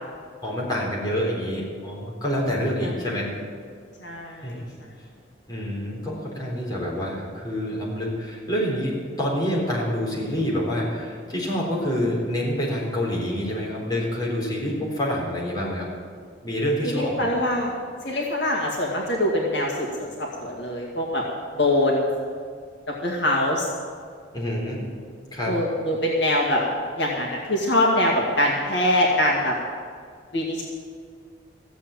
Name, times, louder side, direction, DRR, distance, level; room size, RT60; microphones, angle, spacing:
voice 1, 0.4-3.3 4.4-4.7 5.5-15.9 16.4-17.3 24.3-24.9 25.3-25.5, equal, 20° left, -4 dB, 3.9 m, -27 dB
voice 2, 4.0-4.6 16.8-17.7 18.0-21.2 21.6-22.1 23.0-23.7 25.5-26.6 27.0-29.5 30.3-30.6, left 1 dB, 65° left, -2 dB, 2.0 m, -23 dB
15.5 x 7.7 x 8.9 m, 2.1 s
head